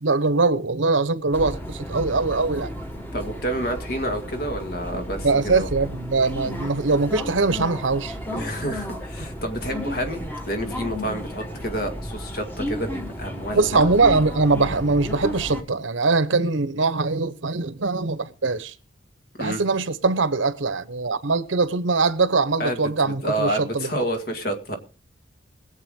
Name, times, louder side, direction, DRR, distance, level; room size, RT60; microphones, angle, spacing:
voice 1, 0.0-2.7 5.2-8.1 13.5-18.7 19.4-24.0, right 3 dB, 80° right, 1.0 m, -22 dB
sound 1, 1.3-15.6, equal, 10° left, 1.4 m, -33 dB
voice 2, 3.1-5.7 8.3-13.8 19.4-19.6 22.6-24.8, equal, 50° left, 2.1 m, -29 dB
21.0 x 8.1 x 3.7 m
head